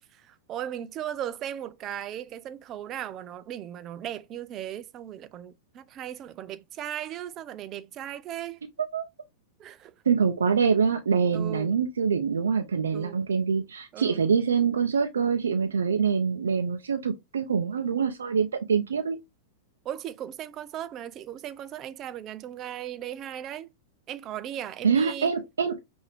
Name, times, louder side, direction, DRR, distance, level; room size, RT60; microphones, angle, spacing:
voice 1, 0.1-8.6 9.6-9.9 11.3-11.7 12.9-13.2 13.9-14.2 19.8-23.7 24.1-25.3, right 11 dB, 35° right, 0.6 m, -37 dB
voice 2, 10.1-19.2 24.8-25.8, right 6 dB, 85° right, 0.6 m, -25 dB
5.6 x 2.7 x 3.4 m
hypercardioid pair, 110°, 0 cm